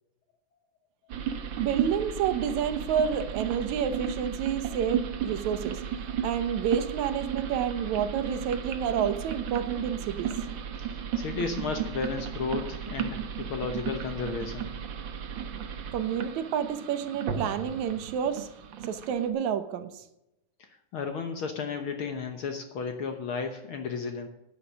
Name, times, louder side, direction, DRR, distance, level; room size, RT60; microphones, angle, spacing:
sound 1, 1.1-19.3, right 8 dB, 90° right, 1.0 m, -34 dB
voice 1, 1.6-5.8 6.2-10.3 15.9-18.5 18.9-20.0, right 8 dB, 70° right, 10 dB, 2.1 m, -29 dB
voice 2, 10.8-14.7 20.9-24.3, left 5 dB, 65° left, 5 dB, 1.3 m, -33 dB
9.6 x 9.4 x 6.2 m, 0.86 s
omnidirectional pair, 3.6 m